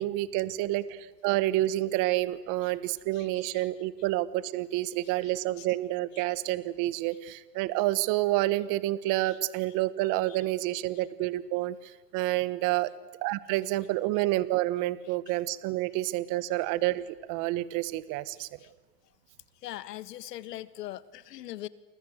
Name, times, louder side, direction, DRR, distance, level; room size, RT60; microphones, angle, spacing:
voice 1, 0.0-12.9 13.2-18.5, right 16 dB, 40° right, 16 dB, 1.3 m, -29 dB
voice 2, 3.1-3.7 5.6-5.7 6.1-6.2 9.3-9.4 10.3-10.4 15.3-15.4 18.6-18.7 19.6-21.7, left 14 dB, 80° left, 16 dB, 1.7 m, -41 dB
29.5 x 24.5 x 8.1 m, 1.2 s
supercardioid pair, 140°, 48 cm